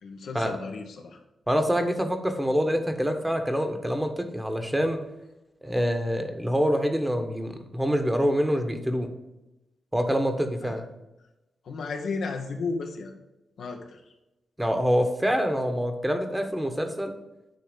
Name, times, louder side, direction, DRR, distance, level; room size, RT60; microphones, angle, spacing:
voice 1, 0.0-1.2 10.6-10.8 11.6-13.1 13.6-14.0, left 4 dB, 75° left, 3 dB, 0.9 m, -34 dB
voice 2, 1.5-5.0 5.6-9.1 9.9-10.8 14.6-17.1, equal, 10° right, 6 dB, 1.2 m, -26 dB
9.2 x 3.2 x 5.2 m, 0.99 s
supercardioid pair, 40°, 0 cm